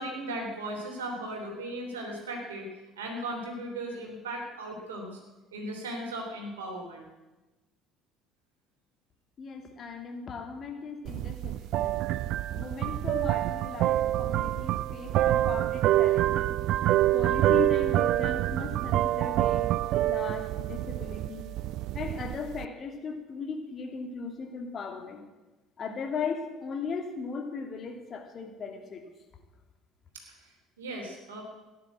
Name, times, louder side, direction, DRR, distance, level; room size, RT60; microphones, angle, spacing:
voice 1, 0.0-2.7 3.0-5.2 5.5-7.1 30.8-31.4, right 1 dB, 75° right, 1 dB, 3.2 m, -37 dB
voice 2, 9.4-11.9 12.5-16.5 17.1-19.7 20.0-21.5 21.9-25.2 25.8-29.0, left 5 dB, 40° left, 4 dB, 2.7 m, -37 dB
sound 1, 11.1-22.7, right 14 dB, 55° right, 0.4 m, -27 dB
16.0 x 10.5 x 7.6 m, 1.1 s
figure-of-eight pair, 55°, 0 cm